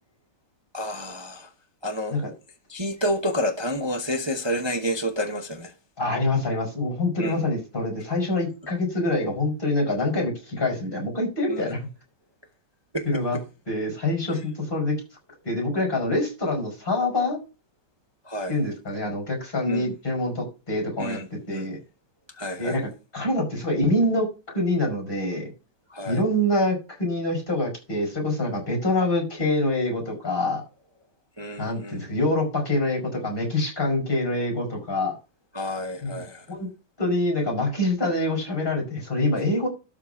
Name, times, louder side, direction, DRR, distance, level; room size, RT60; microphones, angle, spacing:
voice 1, 0.7-1.5 1.8-2.2 2.7-5.7 7.2-7.4 11.5-11.7 12.9-13.2 18.3-18.5 19.7-19.9 21.0-21.7 22.4-22.8 25.9-26.2 31.4-32.0 35.5-36.4, equal, 20° right, 0.6 m, -29 dB
voice 2, 6.0-11.8 13.1-13.4 13.7-15.0 15.4-17.4 18.5-21.8 22.6-22.8 23.1-25.5 26.1-30.6 31.6-35.1 36.0-36.7 37.0-39.7, left 1 dB, 25° left, 5.7 m, -25 dB
12.5 x 4.2 x 5.7 m
omnidirectional pair, 2.2 m